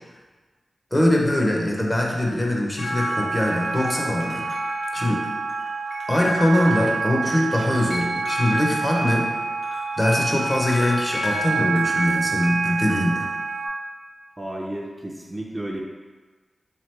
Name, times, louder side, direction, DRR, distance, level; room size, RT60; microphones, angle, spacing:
voice 1, 0.9-4.4 4.9-5.2 6.1-9.3 10.0-13.3, left 1 dB, 20° left, -2 dB, 0.7 m, -22 dB
sound 1, 2.8-13.7, right 3 dB, 85° left, 0.6 m, -27 dB
voice 2, 14.4-15.8, right 1 dB, 20° right, -2 dB, 0.4 m, -32 dB
3.6 x 2.9 x 3.2 m, 1.3 s
wide cardioid pair, 65°, 0 cm